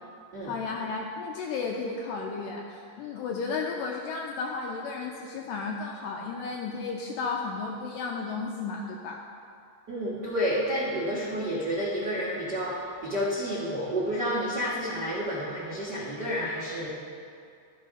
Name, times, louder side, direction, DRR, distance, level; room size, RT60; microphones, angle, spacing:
voice 1, 0.4-9.2, left 4 dB, 85° left, 0 dB, 2.0 m, -33 dB
voice 2, 9.9-16.9, equal, 75° right, -9 dB, 0.9 m, -30 dB
13.0 x 5.5 x 5.4 m, 2.3 s
omnidirectional pair, 4.5 m